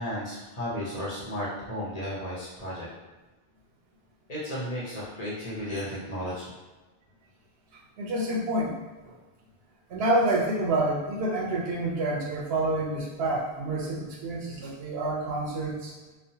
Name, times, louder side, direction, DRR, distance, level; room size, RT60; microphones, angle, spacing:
voice 1, 0.0-2.9 4.3-6.5, equal, 40° left, -8 dB, 0.8 m, -34 dB
voice 2, 8.0-8.7 9.9-15.9, right 1 dB, 75° right, -2 dB, 0.9 m, -28 dB
3.1 x 2.0 x 2.7 m, 1.2 s
omnidirectional pair, 1.0 m